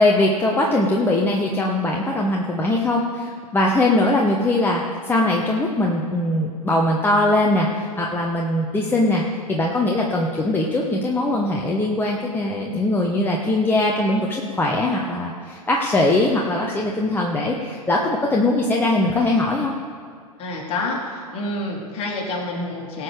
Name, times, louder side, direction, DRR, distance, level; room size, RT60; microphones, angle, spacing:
voice 1, 0.0-9.2 9.5-19.7, left 2 dB, 10° left, -1 dB, 1.0 m, -21 dB
voice 2, 20.4-23.0, left 2 dB, 30° left, -2 dB, 2.9 m, -28 dB
18.0 x 6.5 x 5.0 m, 2.2 s
figure-of-eight pair, 100°, 20 cm